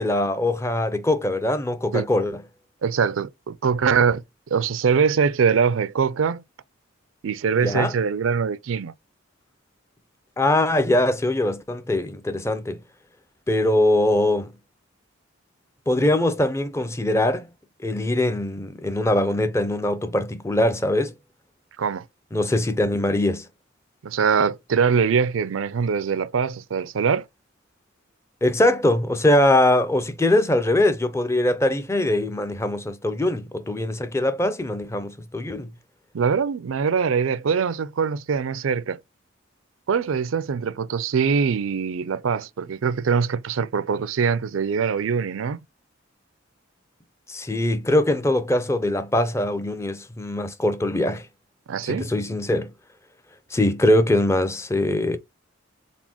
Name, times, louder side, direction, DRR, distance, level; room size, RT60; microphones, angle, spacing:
voice 1, 0.0-2.4 7.6-7.9 10.4-12.8 13.5-14.5 15.9-17.5 17.8-21.1 22.3-23.5 28.4-35.7 47.3-51.2 51.8-52.7 53.5-55.2, left 1 dB, 15° left, 0.4 m, -22 dB
voice 2, 2.8-4.2 4.5-6.4 7.2-8.9 21.8-22.0 24.0-27.3 36.1-39.0 39.9-45.6 51.7-52.1, right 6 dB, 85° right, 0.4 m, -23 dB
4.2 x 3.8 x 2.9 m
head